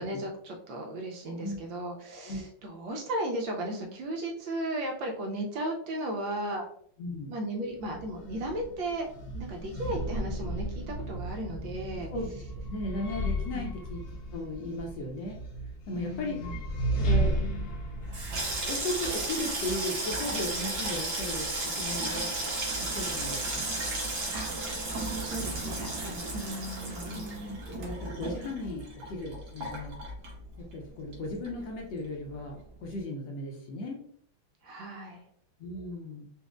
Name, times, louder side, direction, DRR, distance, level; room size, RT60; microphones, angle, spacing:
voice 1, 0.0-6.7 7.3-9.1 9.3-12.1 13.5-13.7 15.9-16.6 24.3-24.5 25.1-27.2 34.6-35.2, right 1 dB, 75° right, 1 dB, 1.2 m, -35 dB
voice 2, 7.0-7.3 11.9-12.4 12.7-14.0 14.3-15.4 15.9-16.5 17.0-17.3 18.7-22.3 22.8-23.6 27.1-30.0 30.7-34.0 35.6-36.3, left 1 dB, 75° left, 0 dB, 1.1 m, -36 dB
sound 1, 7.7-19.9, right 1 dB, 90° left, 0.7 m, -34 dB
Water tap faucet / Sink (filling or washing), 18.0-30.8 31.1-31.8 32.0-32.4, right 2 dB, 60° right, 1.3 m, -34 dB
4.1 x 2.5 x 2.4 m, 0.62 s
omnidirectional pair, 2.3 m